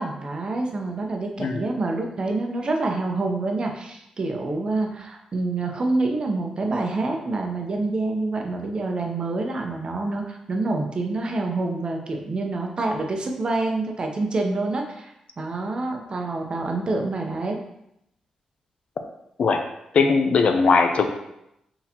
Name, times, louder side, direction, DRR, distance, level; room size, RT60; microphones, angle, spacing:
voice 1, 0.0-17.6, right 2 dB, 45° right, 2 dB, 0.7 m, -27 dB
voice 2, 19.9-21.1, left 4 dB, 65° left, 6 dB, 0.5 m, -19 dB
4.1 x 4.0 x 2.9 m, 0.82 s
cardioid pair, 75°, 2 cm